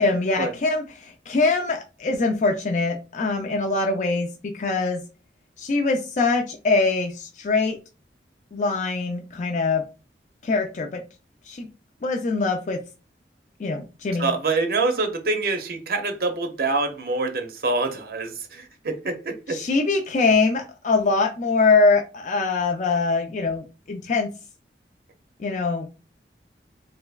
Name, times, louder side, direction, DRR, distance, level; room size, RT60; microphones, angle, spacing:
voice 1, 0.0-5.0 5.6-7.8 8.5-9.8 10.4-11.0 11.5-11.7 12.0-12.8 13.6-14.3 19.5-24.3 25.4-25.9, left 3 dB, 45° left, 0.4 m, -23 dB
voice 2, 14.2-19.6, right 3 dB, 55° right, 0.6 m, -25 dB
3.3 x 3.0 x 2.3 m
head